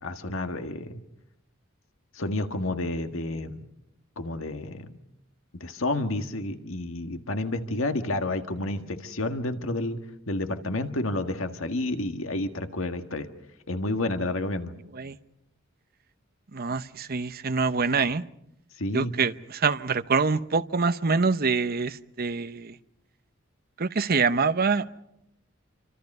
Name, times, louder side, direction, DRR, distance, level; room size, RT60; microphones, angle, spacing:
voice 1, 0.0-1.0 2.1-3.6 4.2-4.9 5.6-10.0 10.3-13.3 13.7-14.7 18.8-19.1, left 2 dB, 85° left, 7 dB, 1.7 m, -30 dB
voice 2, 16.5-18.2 18.9-22.7 23.8-24.8, right 4 dB, 50° right, 11 dB, 0.8 m, -25 dB
28.0 x 25.5 x 5.5 m, 0.80 s
head